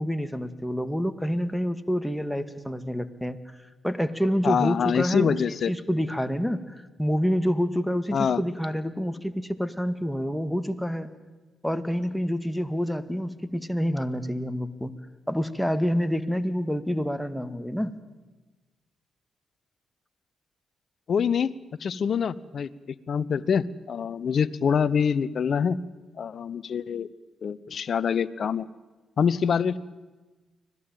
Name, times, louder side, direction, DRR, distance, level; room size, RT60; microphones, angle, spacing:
voice 1, 0.0-3.4 3.8-5.4 5.7-11.1 11.6-14.9 15.3-17.9, equal, 5° left, 10 dB, 2.0 m, -27 dB
voice 2, 4.4-5.7 8.1-8.4 21.1-21.5 21.8-25.8 26.2-27.1 27.4-28.7 29.2-29.8, left 7 dB, 60° left, 20 dB, 0.8 m, -25 dB
25.0 x 17.5 x 9.1 m, 1.2 s
hypercardioid pair, 40°, 0 cm